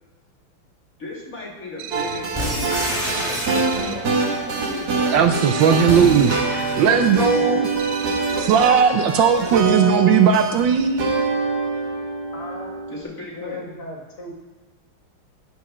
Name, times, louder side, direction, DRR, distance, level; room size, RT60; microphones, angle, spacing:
voice 1, 1.0-5.9 6.9-7.6 12.9-13.6, left 2 dB, 40° left, -3 dB, 2.8 m, -36 dB
sound 1, 1.8-2.4 3.1-4.1 5.4-6.5 7.8-8.9, right 10 dB, 90° right, 1.5 m, -37 dB
sound 2, 1.9-13.0, right 3 dB, 50° right, 1.8 m, -25 dB
sound 3, 2.3-4.1 5.8-6.9, equal, 5° right, 3.2 m, -28 dB
voice 2, 5.1-6.3 6.8-7.7 8.4-11.2, right 7 dB, 70° right, 7 dB, 1.3 m, -17 dB
voice 3, 12.3-12.8 13.4-14.3, left 2 dB, 80° left, 0 dB, 2.8 m, -36 dB
10.0 x 6.6 x 6.1 m, 1.3 s
omnidirectional pair, 2.3 m